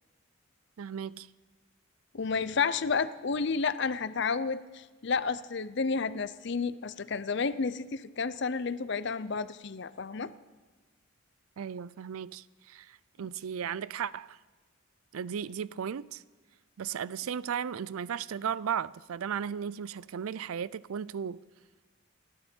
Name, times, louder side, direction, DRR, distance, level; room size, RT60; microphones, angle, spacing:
voice 1, 0.8-1.3 11.6-14.4 15.1-16.2 16.8-21.4, right 7 dB, 85° right, 0.4 m, -35 dB
voice 2, 2.1-10.3, left 5 dB, 55° left, 0.6 m, -31 dB
29.0 x 10.0 x 4.4 m
head